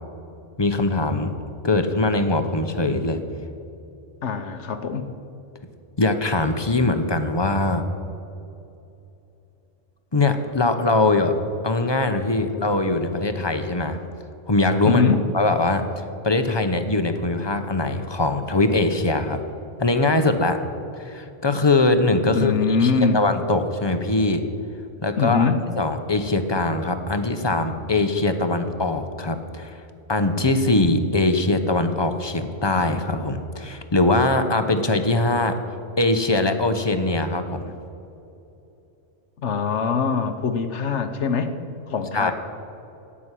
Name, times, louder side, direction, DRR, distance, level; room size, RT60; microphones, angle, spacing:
voice 1, 0.6-1.3 1.6-3.2 6.0-7.8 10.1-11.4 11.6-14.0 14.5-15.0 15.3-15.8 16.2-19.4 19.8-20.6 21.0-24.4 25.0-25.5 25.8-29.8 30.1-35.6 36.0-37.7 42.1-42.3, left 2 dB, 25° left, 8 dB, 0.8 m, -22 dB
voice 2, 4.2-5.1 14.8-15.2 22.3-23.2 25.2-25.6 39.4-41.5 41.9-42.3, left 5 dB, 65° left, 8 dB, 1.2 m, -22 dB
17.0 x 6.2 x 9.9 m, 2.8 s
omnidirectional pair, 1.3 m